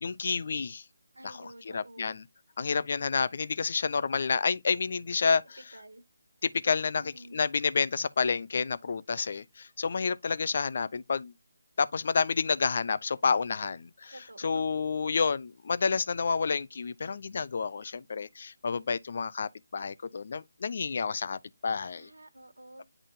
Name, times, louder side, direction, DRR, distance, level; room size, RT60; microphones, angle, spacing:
voice 1, 0.0-0.8 1.2-2.2 2.6-5.6 6.4-7.0 7.3-11.3 11.8-22.1, left 5 dB, 50° left, 0.6 m, -29 dB
voice 2, 1.1-2.2 5.7-6.0 7.0-7.4 14.1-14.8 21.8-22.8, right 1 dB, 85° right, 1.7 m, -50 dB
10.0 x 3.7 x 2.6 m
figure-of-eight pair, 155°, 0 cm